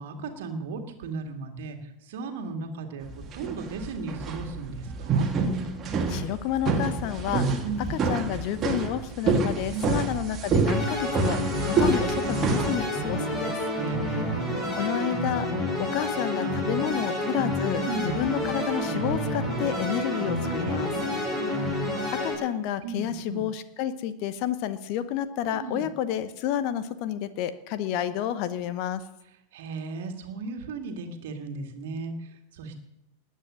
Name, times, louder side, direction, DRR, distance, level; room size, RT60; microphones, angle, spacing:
voice 1, 0.0-5.3 7.6-8.0 9.7-10.0 13.8-14.6 17.8-18.1 20.7-21.5 22.8-23.4 25.5-25.9 29.5-32.8, right 3 dB, 55° right, 5 dB, 2.1 m, -36 dB
sound 1, 3.1-12.8, right 4 dB, 25° right, 2.0 m, -27 dB
voice 2, 6.1-7.6 7.9-13.6 14.7-15.5 15.8-20.9 21.5-21.9 22.2-29.0, left 10 dB, 45° left, 13 dB, 0.9 m, -30 dB
sound 2, 10.6-22.4, left 1 dB, 20° left, 5.0 m, -29 dB
20.0 x 8.4 x 6.4 m, 0.90 s
figure-of-eight pair, 90°, 0 cm